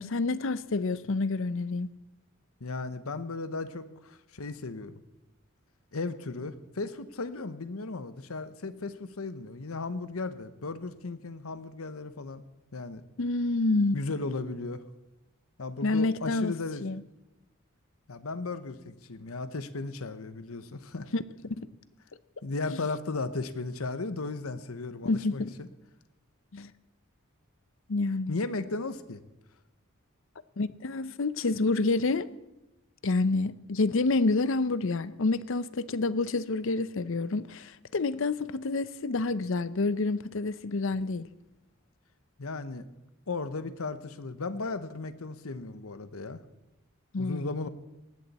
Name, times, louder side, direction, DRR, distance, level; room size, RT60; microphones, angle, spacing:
voice 1, 0.0-1.9 13.2-14.0 15.8-16.5 16.8-17.0 21.1-21.2 21.6-21.7 22.7-22.8 25.0-25.5 26.5-26.7 27.9-28.4 30.6-32.3 33.0-41.3 47.1-47.7, left 3 dB, 65° left, 0.7 m, -28 dB
voice 2, 2.6-5.0 5.9-12.4 12.7-13.0 13.9-14.8 15.6-16.8 18.1-21.1 22.4-25.7 28.3-29.2 42.4-42.9 43.3-46.4 47.2-47.7, left 3 dB, 85° left, 1.0 m, -35 dB
18.5 x 15.0 x 4.2 m
head